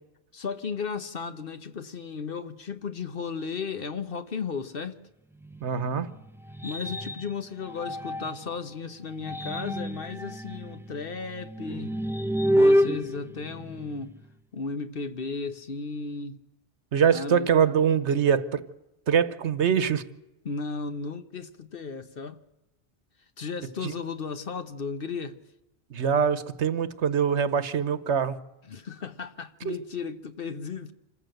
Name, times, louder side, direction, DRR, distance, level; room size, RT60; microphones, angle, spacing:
voice 1, 0.3-5.0 6.6-12.0 12.5-14.2 14.5-16.4 17.1-17.5 20.4-22.4 23.4-25.4 28.7-30.9, left 5 dB, 55° left, 1.1 m, -35 dB
sound 1, 5.4-8.6 9.1-14.3, equal, 5° right, 0.5 m, -28 dB
voice 2, 5.6-6.1 16.9-18.6 19.1-20.0 23.8-23.9 25.9-28.4 29.6-29.7, right 7 dB, 70° right, 1.3 m, -23 dB
26.0 x 14.5 x 7.8 m
omnidirectional pair, 1.2 m